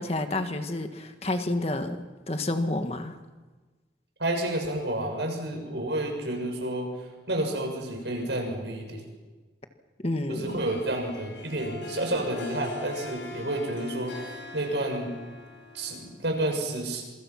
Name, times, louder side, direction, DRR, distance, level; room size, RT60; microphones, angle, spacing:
voice 1, 0.0-3.2 10.0-10.7, left 2 dB, 35° left, 7 dB, 1.7 m, -30 dB
voice 2, 4.2-9.0 10.3-15.1 15.7-17.0, right 1 dB, 75° right, 3 dB, 6.7 m, -30 dB
Harp, 10.5-16.3, left 2 dB, 80° left, 6.0 m, -41 dB
27.0 x 24.0 x 6.0 m, 1.3 s
head